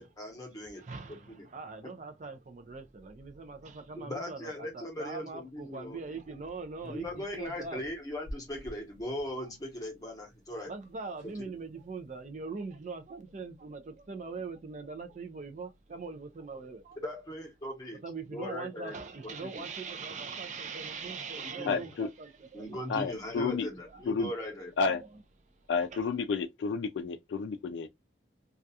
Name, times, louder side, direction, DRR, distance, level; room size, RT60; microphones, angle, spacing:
voice 1, 0.0-1.5 1.8-1.9 4.0-6.2 6.9-10.7 11.3-11.4 17.0-19.0 19.2-19.6 21.4-21.8 22.5-24.7, left 1 dB, 20° left, 0.8 m, -39 dB
voice 2, 0.8-7.8 10.7-17.0 18.0-22.8 23.9-24.0 24.8-24.9 25.9-26.0, right 4 dB, 40° right, 0.4 m, -41 dB
sound 1, 6.8-9.3 10.6-10.7 10.8-10.9 11.1-11.5 11.9-12.2, equal, 85° right, 0.6 m, -48 dB
voice 3, 21.7-22.1 22.9-23.7 24.1-24.3 24.8-25.0 25.7-27.9, left 5 dB, 75° left, 0.3 m, -31 dB
2.3 x 2.3 x 2.6 m
head